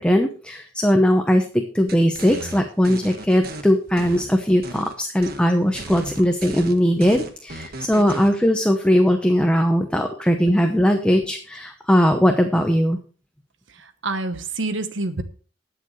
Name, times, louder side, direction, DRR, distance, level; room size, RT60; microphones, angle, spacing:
voice 1, 0.0-13.0, equal, 5° left, 4 dB, 0.9 m, -19 dB
sound 1, 1.9-3.6 4.0-4.9 5.2-5.4 5.7-8.3, right 2 dB, 55° right, 1.4 m, -35 dB
voice 2, 13.7-15.2, right 3 dB, 80° right, 10 dB, 1.1 m, -27 dB
21.0 x 7.0 x 3.2 m, 0.40 s
head